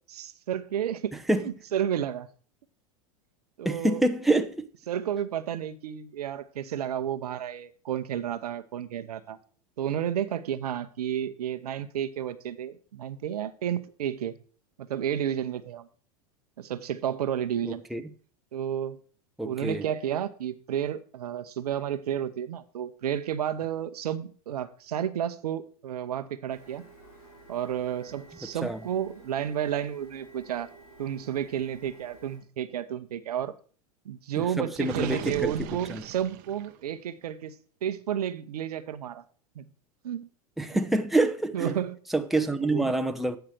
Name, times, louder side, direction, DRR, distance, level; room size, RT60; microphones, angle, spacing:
voice 1, 0.1-2.3 3.6-4.0 4.9-9.4 9.8-14.4 14.8-15.9 16.6-17.8 18.5-19.0 19.4-26.8 27.5-30.7 31.0-33.5 34.0-37.5 37.8-39.2 39.6-39.7 40.0-40.3 41.5-42.0 42.6-42.9, right 10 dB, 80° right, 0.8 m, -31 dB
voice 2, 3.6-4.7 17.6-18.0 19.4-19.8 28.6-28.8 34.4-36.0 40.6-41.8 42.1-43.4, right 2 dB, ahead, 0.8 m, -27 dB
Printer, 26.5-32.4, right 3 dB, 75° left, 4.4 m, -52 dB
Gurgling, 34.8-36.9, right 14 dB, 50° right, 0.8 m, -39 dB
8.9 x 5.8 x 6.5 m
hypercardioid pair, 105°, 19 cm